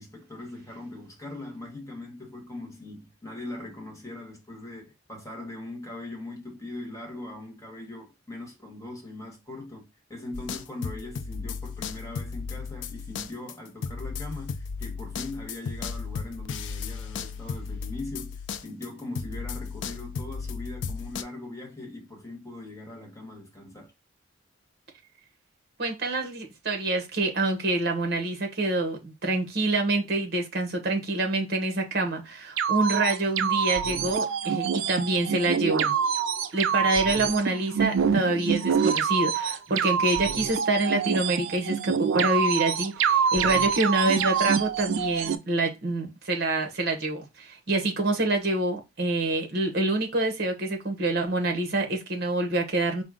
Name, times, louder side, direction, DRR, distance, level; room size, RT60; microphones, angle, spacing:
voice 1, 0.0-23.9, left 2 dB, 15° left, 1.2 m, -40 dB
sound 1, 10.3-18.9 19.2-21.2, left 5 dB, 65° left, 0.4 m, -35 dB
voice 2, 25.8-35.9 36.5-53.0, right 2 dB, 55° right, 1.0 m, -26 dB
sound 2, 32.6-45.4, right 7 dB, 75° right, 0.4 m, -26 dB
4.5 x 2.1 x 3.7 m
head